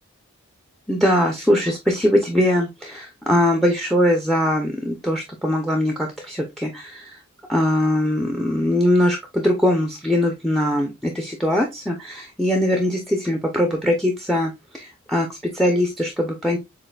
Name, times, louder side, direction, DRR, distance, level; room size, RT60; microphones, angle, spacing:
voice 1, 0.9-7.2 7.5-16.6, left 1 dB, ahead, 3 dB, 0.6 m, -21 dB
7.3 x 2.6 x 2.3 m, 0.22 s
head